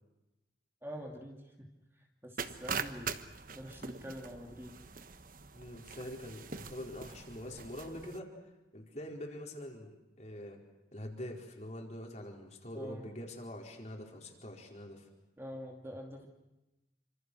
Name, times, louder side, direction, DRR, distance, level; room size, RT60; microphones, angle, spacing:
voice 1, 0.8-3.2 3.5-4.8 12.7-13.2 15.4-16.3, equal, 10° right, 1 dB, 2.6 m, -46 dB
sound 1, 2.4-8.2, right 5 dB, 45° right, 1.2 m, -43 dB
voice 2, 5.5-8.3 8.7-10.6 10.9-15.1, left 1 dB, 35° left, 1 dB, 4.5 m, -44 dB
29.0 x 26.0 x 6.3 m, 1.0 s
head